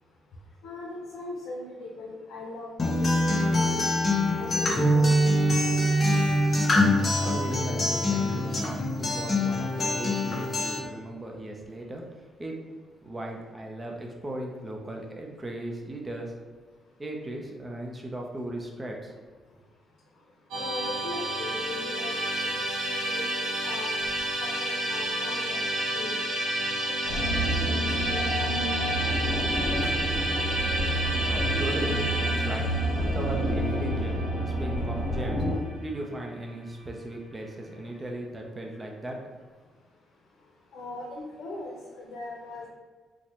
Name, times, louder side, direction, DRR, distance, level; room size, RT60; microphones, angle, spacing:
voice 1, 0.6-3.8 4.4-5.3 5.6-5.8 20.5-22.5 22.9-23.9 24.4-26.2 26.7-27.2 27.6-28.8 29.4-29.9 40.7-42.7, left 2 dB, 85° left, -4 dB, 0.6 m, -40 dB
Acoustic guitar, 2.8-10.8, left 1 dB, 35° left, 0.7 m, -24 dB
voice 2, 7.2-12.7 13.0-16.4 17.0-19.1 31.2-32.7 32.9-39.5, right 1 dB, 20° right, 0 dB, 0.6 m, -37 dB
Musical instrument, 20.5-35.7, right 1 dB, 85° right, 0.7 m, -30 dB
sound 1, 27.0-35.6, right 1 dB, 70° left, 1.0 m, -29 dB
4.0 x 2.2 x 3.0 m, 1.4 s
cardioid pair, 110°, 0 cm